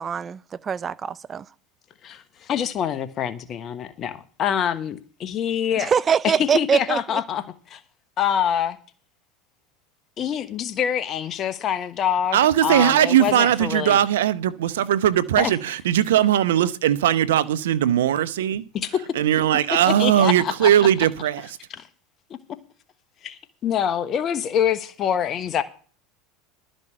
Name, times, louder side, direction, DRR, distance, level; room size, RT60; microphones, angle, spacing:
voice 1, 0.0-1.4 5.8-7.2, right 7 dB, 30° right, 0.6 m, -23 dB
voice 2, 2.0-5.9 6.2-7.8 8.2-8.8 10.2-14.0 15.3-15.5 18.7-19.1 19.7-20.9 21.8-21.9 23.2-25.6, left 9 dB, 40° left, 1.2 m, -25 dB
voice 3, 12.3-18.6 19.2-21.4, right 11 dB, 80° right, 0.8 m, -19 dB
12.5 x 5.3 x 8.8 m
hypercardioid pair, 95°, 0 cm